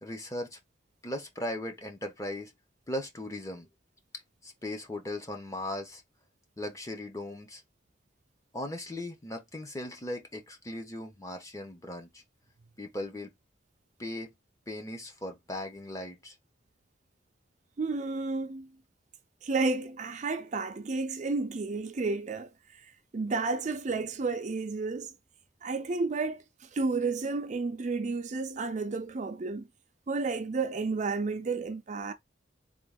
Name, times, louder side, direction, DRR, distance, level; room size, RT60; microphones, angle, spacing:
voice 1, 0.0-0.6 1.0-2.5 2.9-3.7 4.4-6.0 6.6-7.6 8.5-12.2 12.8-13.3 14.0-14.3 14.7-16.3, left 1 dB, 15° left, 0.9 m, -38 dB
voice 2, 17.8-18.7 19.4-22.5 23.1-25.1 25.6-26.4 26.7-29.7 30.1-32.1, right 3 dB, 40° right, 0.4 m, -31 dB
3.8 x 2.4 x 3.6 m
head